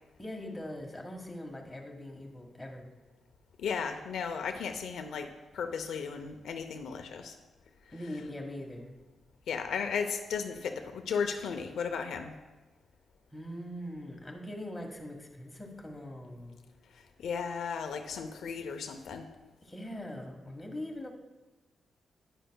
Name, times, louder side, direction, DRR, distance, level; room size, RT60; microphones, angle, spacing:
voice 1, 0.2-2.9 7.9-9.0 13.3-16.6 19.6-21.1, left 1 dB, 10° left, 1 dB, 1.4 m, -42 dB
voice 2, 3.6-7.3 9.5-12.3 17.2-19.3, left 6 dB, 85° left, 5 dB, 0.6 m, -35 dB
10.0 x 9.9 x 2.2 m, 1.2 s
cardioid pair, 110°, 0 cm